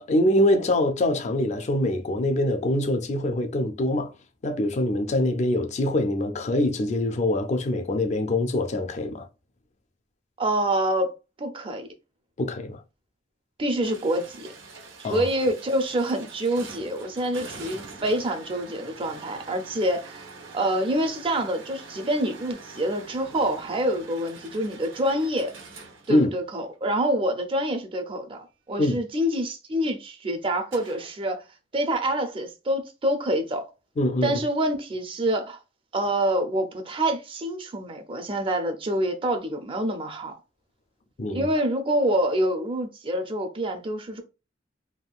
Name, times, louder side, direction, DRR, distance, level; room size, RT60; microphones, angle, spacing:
voice 1, 0.0-4.1 4.4-9.3 12.4-12.8 15.0-15.3 26.1-26.3 28.8-28.9 34.0-34.4 41.2-41.5, left 1 dB, 35° left, 0.4 m, -24 dB
voice 2, 10.4-11.9 13.6-14.5 15.1-25.5 26.1-31.4 31.7-33.6 34.2-35.6 35.9-40.3 41.3-44.2, right 1 dB, 30° right, 0.5 m, -26 dB
sound 1, 13.8-26.9 30.7-31.2, right 3 dB, 80° right, 0.8 m, -44 dB
3.6 x 2.3 x 2.3 m
head